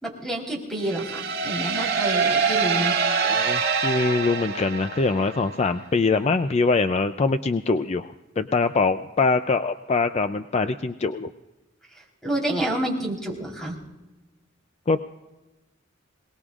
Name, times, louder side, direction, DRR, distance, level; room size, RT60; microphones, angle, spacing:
voice 1, 0.0-2.9 12.2-13.7, right 1 dB, ahead, 0 dB, 3.9 m, -28 dB
sound 1, 0.8-5.5, right 5 dB, 55° right, 2.3 m, -25 dB
voice 2, 3.2-11.3 14.9-15.0, left 3 dB, 35° left, 9 dB, 0.4 m, -23 dB
27.0 x 19.0 x 2.4 m, 1.1 s
head